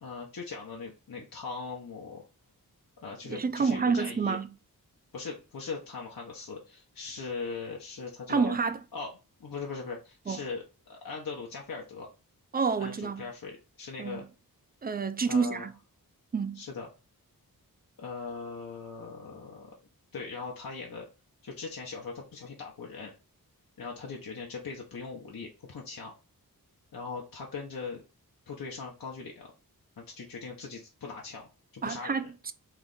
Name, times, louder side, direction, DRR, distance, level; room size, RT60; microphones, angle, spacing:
voice 1, 0.0-2.2 3.0-4.4 5.1-8.6 8.9-9.1 9.4-10.6 10.9-12.1 12.8-14.2 15.2-15.7 16.5-16.9 18.0-19.7 20.1-21.1 21.4-23.1 23.8-26.1 26.9-28.0 28.5-29.5 30.0-32.2, left 4 dB, 65° left, 0.9 m, -40 dB
voice 2, 3.3-4.5 8.3-8.8 10.3-10.4 12.5-13.3 14.0-14.2 14.8-15.7 16.3-16.6 31.8-32.5, right 5 dB, 25° right, 0.4 m, -28 dB
3.3 x 3.0 x 3.8 m
wide cardioid pair, 105°, 36 cm